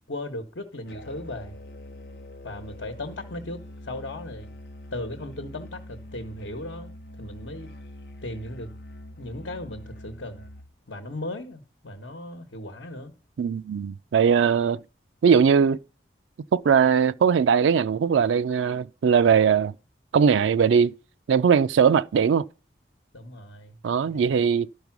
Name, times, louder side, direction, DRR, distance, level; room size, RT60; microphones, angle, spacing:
voice 1, 0.1-1.5 2.4-4.5 4.9-6.9 7.2-7.7 8.2-8.7 9.2-10.4 10.9-13.1 23.1-24.4, left 1 dB, 75° left, 1.2 m, -37 dB
Musical instrument, 0.9-10.7, left 1 dB, 55° left, 0.8 m, -44 dB
voice 2, 13.4-14.8 15.2-15.8 16.5-19.7 20.1-20.9 21.3-22.5 23.8-24.7, right 7 dB, 85° right, 0.4 m, -20 dB
11.5 x 5.3 x 6.0 m
head